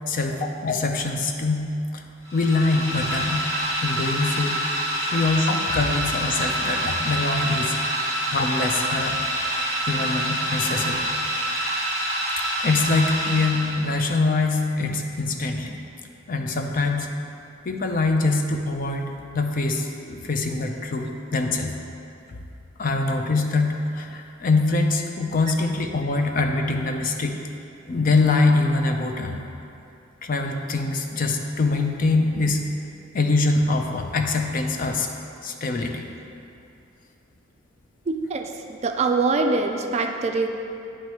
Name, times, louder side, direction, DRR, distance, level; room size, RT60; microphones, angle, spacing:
voice 1, 0.1-2.0 2.3-3.5 3.8-4.6 5.1-7.7 8.3-9.2 9.9-11.1 12.6-15.8 16.3-17.1 17.6-21.7 22.3-22.4 22.8-27.4 27.9-29.5 30.2-32.6 33.1-35.1 35.4-36.1, left 3 dB, 45° left, 3 dB, 0.5 m, -24 dB
sound 1, 2.3-14.1, right 1 dB, 15° left, 1.2 m, -26 dB
voice 2, 38.1-40.5, right 3 dB, 35° right, 4 dB, 0.3 m, -24 dB
9.2 x 3.1 x 4.5 m, 2.6 s
head